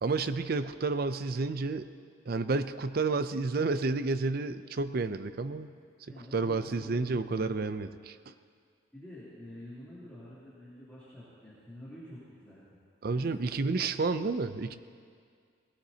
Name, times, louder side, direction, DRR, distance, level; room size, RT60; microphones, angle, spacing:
voice 1, 0.0-1.9 2.3-5.7 6.3-8.3 13.0-14.8, right 3 dB, 50° right, 11 dB, 0.5 m, -30 dB
voice 2, 6.1-7.1 8.9-12.6 13.1-13.4, left 1 dB, 10° left, -13 dB, 3.1 m, -48 dB
20.0 x 17.5 x 2.8 m, 2.2 s
head